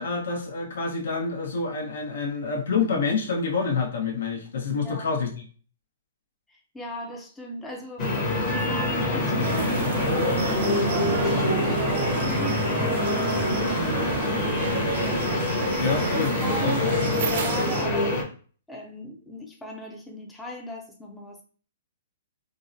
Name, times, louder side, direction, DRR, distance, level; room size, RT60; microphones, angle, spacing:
voice 1, 0.0-5.4 15.8-16.3 16.6-17.1, left 4 dB, 80° left, 1 dB, 0.9 m, -27 dB
voice 2, 4.8-5.2 6.5-8.1 8.5-9.6 9.9-11.9 12.2-14.1 14.8-15.8 16.4-18.2 18.7-21.4, right 1 dB, 5° left, -1 dB, 0.5 m, -38 dB
sound 1, 8.0-18.2, left 2 dB, 30° left, 0.9 m, -26 dB
Laughter / Applause, 8.9-16.7, left 3 dB, 60° left, 1.3 m, -42 dB
sound 2, 9.4-17.9, right 4 dB, 55° right, 0.5 m, -30 dB
3.7 x 2.1 x 2.5 m, 0.41 s
hypercardioid pair, 155°, 0 cm